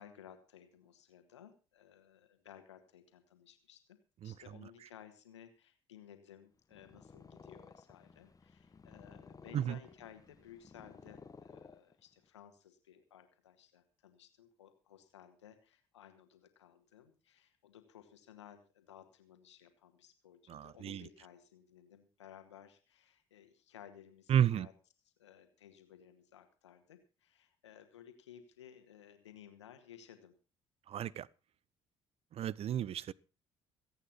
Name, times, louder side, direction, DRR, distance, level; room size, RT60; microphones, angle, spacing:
voice 1, 0.0-24.7 25.2-30.3, left 9 dB, 75° left, 1.8 m, -57 dB
Purr, 6.6-12.3, left 4 dB, 25° left, 1.3 m, -56 dB
voice 2, 20.5-21.1 24.3-24.7 30.9-31.3 32.3-33.1, right 9 dB, 40° right, 0.6 m, -32 dB
23.5 x 8.9 x 4.2 m
figure-of-eight pair, 50°, 15 cm